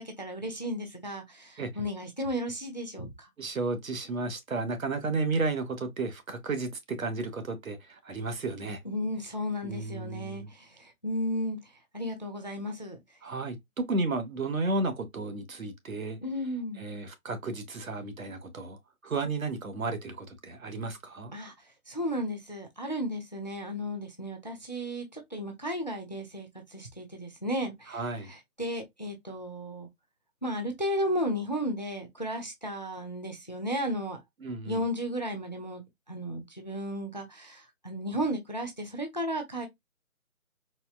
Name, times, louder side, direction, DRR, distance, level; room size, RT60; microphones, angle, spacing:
voice 1, 0.0-3.3 8.8-13.0 16.2-16.8 21.3-21.5 21.9-28.0 28.3-29.9 30.4-34.2 34.7-35.8 36.1-39.7, equal, 30° left, 0.5 m, -34 dB
voice 2, 3.4-8.8 9.6-10.5 13.2-16.2 16.8-18.8 19.0-21.3 27.9-28.3 34.4-34.8, right 3 dB, 65° right, 1.0 m, -33 dB
4.2 x 2.2 x 2.3 m
figure-of-eight pair, 170°, 44 cm